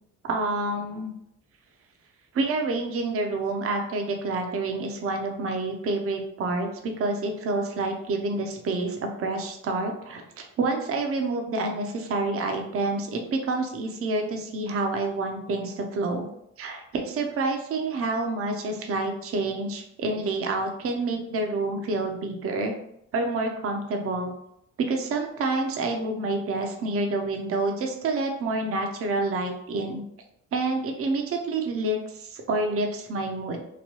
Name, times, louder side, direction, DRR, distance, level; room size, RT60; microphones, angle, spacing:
voice 1, 0.2-1.1 2.3-16.3 16.6-22.7 23.1-24.3 24.8-30.0 30.5-33.6, right 2 dB, 50° right, 3 dB, 0.6 m, -28 dB
3.0 x 2.2 x 2.9 m, 0.75 s
cardioid pair, 90°, 30 cm